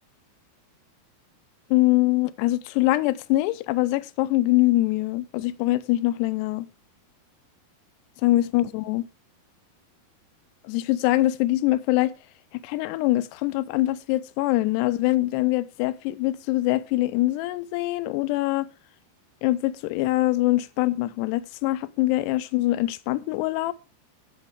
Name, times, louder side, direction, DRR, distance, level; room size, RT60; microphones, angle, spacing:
voice 1, 1.7-6.7 8.2-9.0 10.6-12.1 12.6-18.7 19.4-23.7, left 17 dB, 80° left, 2.7 m, -23 dB
16.5 x 6.0 x 3.6 m
omnidirectional pair, 4.9 m